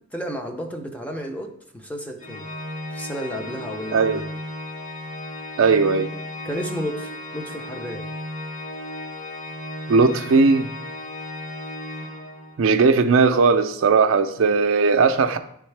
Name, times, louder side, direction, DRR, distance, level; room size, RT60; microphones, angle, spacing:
voice 1, 0.0-2.5 2.9-4.2 6.4-8.1, equal, 5° left, 0.5 m, -32 dB
Organ, 2.2-12.8, left 1 dB, 35° left, 1.0 m, -35 dB
voice 2, 5.6-6.1 9.9-10.7 12.6-15.4, right 4 dB, 70° right, 0.4 m, -18 dB
10.0 x 3.5 x 3.2 m
head